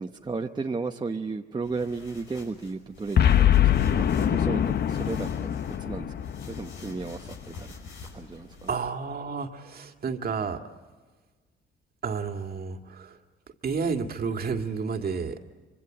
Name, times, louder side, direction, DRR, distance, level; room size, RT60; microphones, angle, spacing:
voice 1, 0.0-3.7 4.0-6.1 6.5-7.7 8.1-8.7, right 4 dB, 20° right, 3 dB, 1.0 m, -34 dB
sound 1, 1.6-8.8, left 3 dB, 85° left, 5.8 m, -47 dB
Boom, 3.2-7.6, left 10 dB, 55° left, 0.9 m, -24 dB
voice 2, 8.7-10.6 12.0-13.2 13.6-15.4, right 5 dB, 50° right, 5 dB, 2.0 m, -31 dB
26.0 x 25.0 x 7.9 m, 1.4 s
cardioid pair, 90°, 20 cm